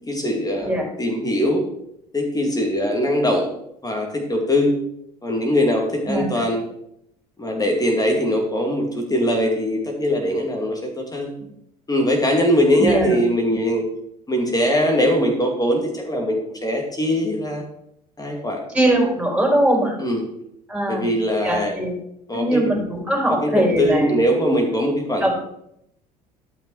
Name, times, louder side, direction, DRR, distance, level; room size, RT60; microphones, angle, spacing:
voice 1, 0.0-1.6 2.1-3.4 3.8-4.7 5.2-6.6 7.4-11.3 11.9-13.8 14.3-17.6 18.2-18.6 20.0-20.3 20.9-21.8 22.3-22.7 23.3-25.3, equal, 20° left, 2 dB, 2.4 m, -21 dB
voice 2, 6.1-6.4 12.8-13.2 18.7-20.0 20.7-21.1 21.4-21.9 22.3-24.2 25.2-25.3, right 1 dB, 5° right, 0 dB, 4.5 m, -21 dB
12.0 x 6.0 x 4.8 m, 0.78 s
hypercardioid pair, 60°, 19 cm